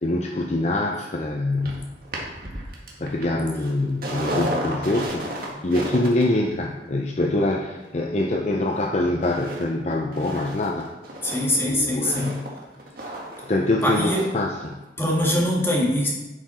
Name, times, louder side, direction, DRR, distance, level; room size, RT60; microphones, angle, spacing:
voice 1, 0.0-2.0 3.0-10.9 11.7-12.6 13.1-14.8, left 2 dB, 40° left, 1 dB, 0.6 m, -25 dB
sound 1, 1.6-8.8 9.2-9.6 9.9-14.4 14.7-14.8, right 1 dB, 55° right, 1.7 m, -34 dB
voice 2, 11.2-12.3 13.8-14.3 15.0-16.1, left 1 dB, 15° left, -3 dB, 2.0 m, -22 dB
11.0 x 5.9 x 4.3 m, 1.1 s
head